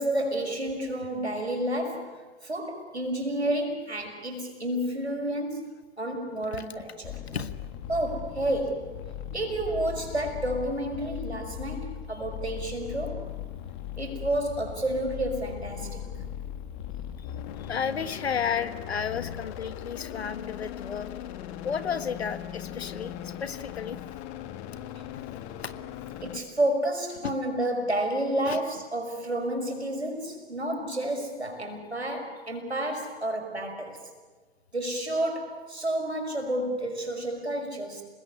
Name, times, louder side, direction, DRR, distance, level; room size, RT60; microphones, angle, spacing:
voice 1, 0.0-5.7 6.0-7.1 7.9-8.9 9.3-13.2 14.0-16.0 24.9-25.0 26.2-34.0 34.7-38.0, right 1 dB, 90° right, 3 dB, 5.6 m, -30 dB
sound 1, 7.0-26.4, left 10 dB, 45° left, 2.3 m, -39 dB
voice 2, 15.8-16.3 17.2-17.3 17.6-21.1 21.6-24.0 25.6-25.7 27.2-27.3 28.4-28.6, left 7 dB, 75° left, 13 dB, 1.7 m, -33 dB
30.0 x 19.5 x 9.9 m, 1.4 s
figure-of-eight pair, 90°, 32 cm